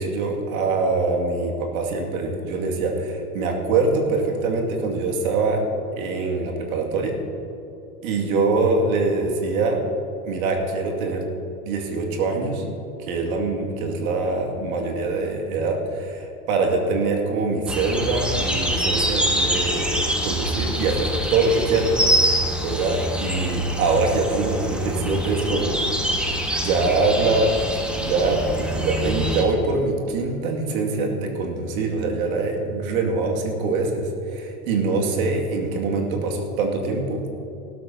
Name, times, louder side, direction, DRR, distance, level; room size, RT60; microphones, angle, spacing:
voice 1, 0.0-5.6 5.9-7.1 8.0-9.8 10.2-11.2 11.6-12.6 13.1-21.9 22.6-25.9 26.6-37.2, right 3 dB, 65° right, 1 dB, 2.3 m, -24 dB
sound 1, 17.7-29.4, equal, ahead, 1.6 m, -25 dB
19.0 x 12.5 x 2.8 m, 2.8 s
hypercardioid pair, 85°, 45 cm